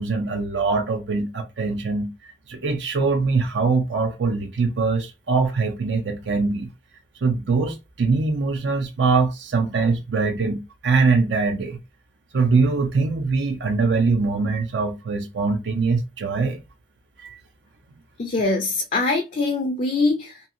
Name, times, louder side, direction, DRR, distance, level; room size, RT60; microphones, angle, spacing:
voice 1, 0.0-6.7 7.2-11.8 12.3-16.6 17.2-17.4, right 4 dB, 70° right, 0.5 m, -22 dB
voice 2, 18.2-20.4, left 3 dB, 40° left, 0.4 m, -23 dB
2.6 x 2.6 x 2.5 m
head